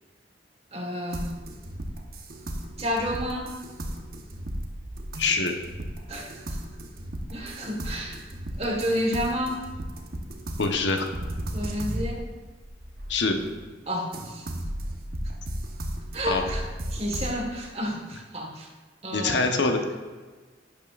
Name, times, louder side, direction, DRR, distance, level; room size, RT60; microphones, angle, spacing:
voice 1, 0.7-1.3 2.8-3.6 6.1-6.6 7.3-8.2 8.6-9.6 11.5-12.2 13.9-14.5 16.1-16.6 16.9-18.7 19.0-19.5, equal, 35° right, 1 dB, 1.4 m, -30 dB
sound 1, 1.1-13.7 14.1-17.4, right 1 dB, 55° right, 1.0 m, -35 dB
voice 2, 5.1-5.6 10.6-11.1 13.1-13.4 16.2-16.4 19.1-19.8, left 3 dB, 75° left, 4 dB, 1.0 m, -24 dB
11.5 x 8.9 x 2.5 m, 1.4 s
head